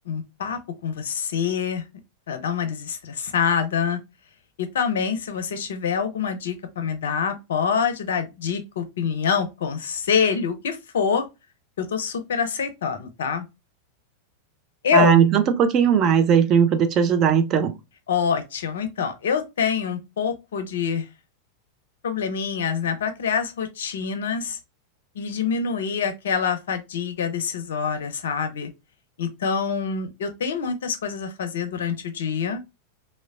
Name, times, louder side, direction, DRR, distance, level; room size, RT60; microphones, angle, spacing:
voice 1, 0.1-1.8 2.3-4.0 4.6-11.2 11.8-13.4 14.8-15.2 18.1-21.1 22.0-24.6 25.2-28.7 29.2-32.6, left 6 dB, 60° left, 0.5 m, -25 dB
voice 2, 14.9-17.7, right 7 dB, 35° right, 0.4 m, -18 dB
3.0 x 2.1 x 2.3 m
figure-of-eight pair, 90°, 0 cm